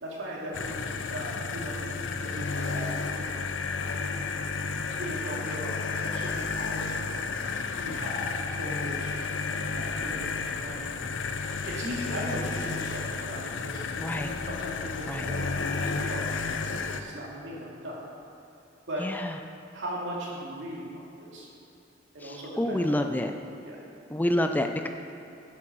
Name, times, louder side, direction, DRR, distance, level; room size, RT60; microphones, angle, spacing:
voice 1, 0.0-3.4 4.3-4.6 4.8-7.1 7.5-9.1 9.5-10.9 11.6-16.3 16.5-18.0 18.9-19.1 19.7-21.5 22.1-23.2 23.6-23.8, equal, 75° right, -4 dB, 2.5 m, -39 dB
sound 1, 0.5-17.0, left 4 dB, 80° left, 0.6 m, -32 dB
voice 2, 14.0-14.3 15.1-15.3 19.0-19.3 22.2-23.3 24.1-24.9, left 1 dB, 10° left, 6 dB, 0.4 m, -28 dB
9.9 x 7.7 x 6.2 m, 2.8 s
head